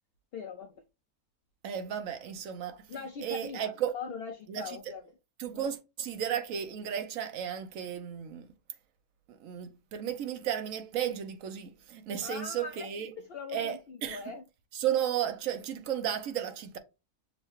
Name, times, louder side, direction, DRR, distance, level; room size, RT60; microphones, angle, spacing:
voice 1, 0.3-0.8 2.9-5.0 5.5-5.6 12.2-12.9 13.2-14.4, left 5 dB, 80° left, 0.5 m, -41 dB
voice 2, 1.6-2.9 3.2-3.9 4.5-4.8 5.4-8.5 9.3-13.1 13.5-14.2 14.7-16.8, right 9 dB, 70° right, 1.0 m, -34 dB
6.4 x 2.2 x 3.0 m
omnidirectional pair, 1.5 m